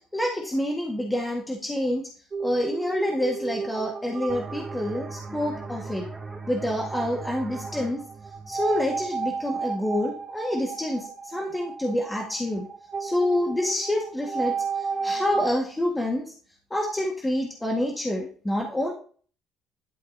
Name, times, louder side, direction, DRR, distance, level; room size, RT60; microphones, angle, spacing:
voice 1, 0.1-2.0 2.4-6.1 6.5-8.0 8.5-12.7 13.0-16.3 16.7-18.9, left 1 dB, 10° left, -1 dB, 1.7 m, -27 dB
sound 1, 2.3-15.6, right 5 dB, 35° right, 0.8 m, -34 dB
sound 2, 4.3-9.7, right 3 dB, 15° right, 2.1 m, -40 dB
11.5 x 5.8 x 2.8 m, 0.43 s
cardioid pair, 90°, 0 cm